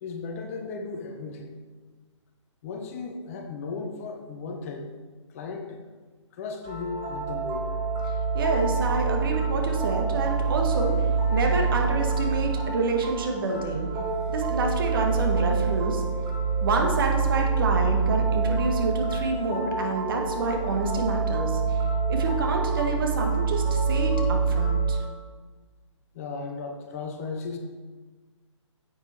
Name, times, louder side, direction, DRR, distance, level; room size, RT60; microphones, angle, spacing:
voice 1, 0.0-1.5 2.6-4.9 5.3-5.8 6.3-7.7 26.1-27.6, left 4 dB, 30° left, 4 dB, 0.9 m, -35 dB
sound 1, 6.6-25.0, right 4 dB, 20° right, 2.4 m, -26 dB
voice 2, 8.3-10.9 11.3-13.9 14.3-16.0 16.6-21.8 22.1-25.0, right 3 dB, 45° right, 2 dB, 1.7 m, -28 dB
9.6 x 7.8 x 4.5 m, 1.4 s
figure-of-eight pair, 135°, 16 cm